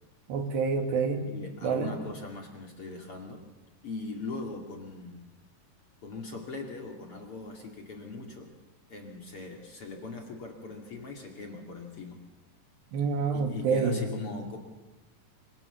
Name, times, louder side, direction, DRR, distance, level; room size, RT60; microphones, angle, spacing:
voice 1, 0.3-1.3 1.6-1.9 12.9-14.1, right 5 dB, 80° right, 6 dB, 4.4 m, -27 dB
voice 2, 1.2-3.5 3.8-5.3 6.0-8.5 8.9-12.2 13.3-14.6, left 3 dB, 40° left, 3 dB, 2.8 m, -40 dB
26.0 x 25.0 x 7.2 m, 1.1 s
omnidirectional pair, 4.9 m